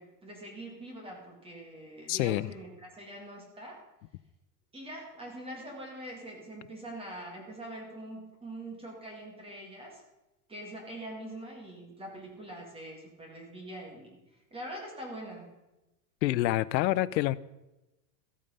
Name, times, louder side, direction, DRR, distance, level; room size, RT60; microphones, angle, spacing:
voice 1, 0.0-3.8 4.7-10.0 10.5-14.2 14.5-15.5, right 1 dB, 10° right, 0 dB, 1.9 m, -43 dB
voice 2, 2.1-2.5 16.2-17.3, left 15 dB, 90° left, 19 dB, 0.7 m, -27 dB
14.0 x 8.8 x 5.5 m, 0.99 s
supercardioid pair, 165°, 50 cm